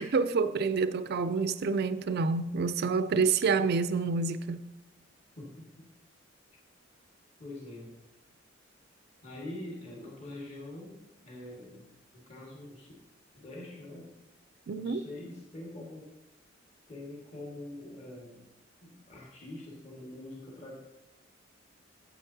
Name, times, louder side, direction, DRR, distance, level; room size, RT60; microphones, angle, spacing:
voice 1, 0.0-4.7 14.7-15.0, right 4 dB, 55° right, 0.4 m, -28 dB
voice 2, 5.4-5.9 7.4-7.9 9.2-11.0 11.2-11.9 12.1-12.9 13.3-14.1 14.7-16.1 16.9-18.4 18.8-20.8, left 1 dB, 35° left, 1.7 m, -44 dB
9.0 x 8.3 x 2.8 m
head